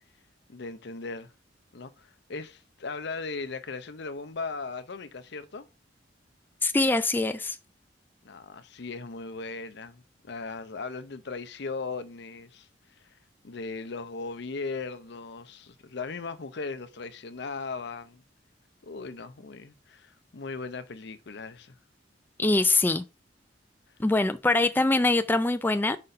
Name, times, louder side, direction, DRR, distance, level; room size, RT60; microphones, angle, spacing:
voice 1, 0.5-1.3 1.7-5.7 8.2-12.7 13.4-18.2 18.8-21.8, left 4 dB, 65° left, 0.7 m, -38 dB
voice 2, 6.6-7.6 22.4-23.0 24.0-26.0, left 2 dB, 10° left, 0.3 m, -23 dB
5.3 x 4.1 x 5.2 m
head